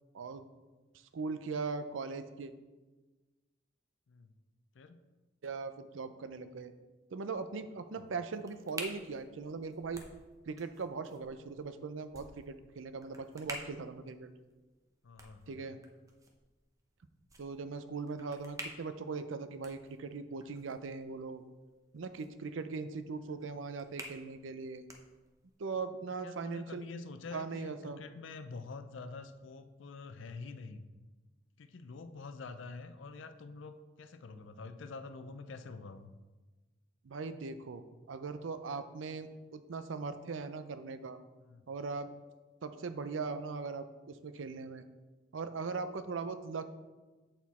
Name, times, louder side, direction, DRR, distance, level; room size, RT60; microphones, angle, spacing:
voice 1, 0.1-0.5 0.9-2.5 5.4-6.7 7.1-10.0 10.5-14.3 15.5-15.8 17.4-21.4 21.9-24.9 25.6-26.9 27.3-28.0 37.0-41.2 41.7-42.1 42.6-44.8 45.3-46.7, right 4 dB, 90° right, 11 dB, 0.5 m, -40 dB
sound 1, 7.8-25.6, right 1 dB, 15° right, 0.8 m, -51 dB
voice 2, 15.0-15.6 26.2-30.9 31.6-36.1 41.4-41.6, left 3 dB, 75° left, 10 dB, 0.5 m, -47 dB
8.1 x 4.5 x 4.2 m, 1.2 s
head